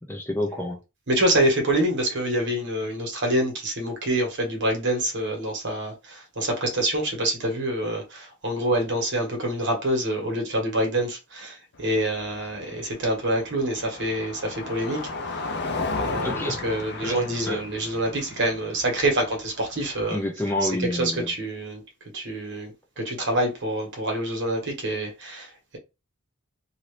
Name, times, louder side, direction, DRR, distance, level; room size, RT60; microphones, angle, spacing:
voice 1, 0.1-0.8 16.2-16.6 17.0-17.6 20.1-21.3, left 1 dB, 10° left, 0.6 m, -29 dB
voice 2, 1.1-15.5 15.9-20.2 20.6-21.8 22.1-25.8, right 1 dB, 55° right, 1.3 m, -26 dB
Car passing by, 11.7-20.0, left 3 dB, 50° left, 0.6 m, -34 dB
2.8 x 2.7 x 3.2 m
head